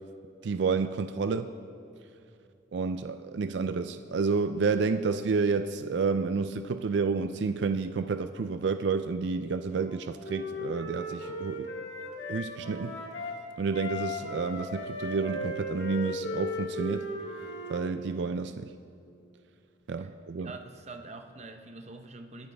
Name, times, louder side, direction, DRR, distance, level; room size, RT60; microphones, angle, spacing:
voice 1, 0.4-1.5 2.7-11.7 12.3-13.0 13.6-17.1 17.7-18.7 19.9-20.5, right 4 dB, 65° right, 9 dB, 0.4 m, -30 dB
Wind instrument woodwind instrument, 9.8-13.4 13.7-17.9, left 1 dB, 70° left, 1.8 m, -36 dB
voice 2, 20.4-22.5, right 3 dB, 35° right, 6 dB, 0.8 m, -45 dB
21.5 x 10.5 x 3.4 m, 2.7 s
head